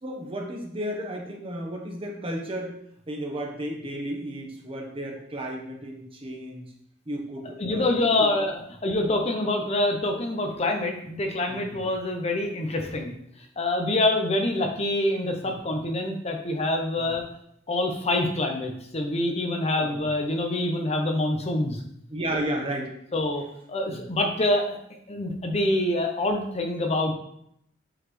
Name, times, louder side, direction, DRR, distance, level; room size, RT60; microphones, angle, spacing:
voice 1, 0.0-2.8 3.1-6.7 7.0-8.3 11.5-11.7 15.4-15.5 17.0-17.1 19.8-19.9 22.1-22.9 23.9-24.0, right 1 dB, 30° right, 0 dB, 1.2 m, -33 dB
voice 2, 7.6-13.1 13.6-17.2 17.7-21.8 23.1-23.4 23.7-24.8 25.1-27.1, left 2 dB, 35° left, 3 dB, 0.7 m, -26 dB
7.7 x 4.0 x 3.2 m, 0.73 s
head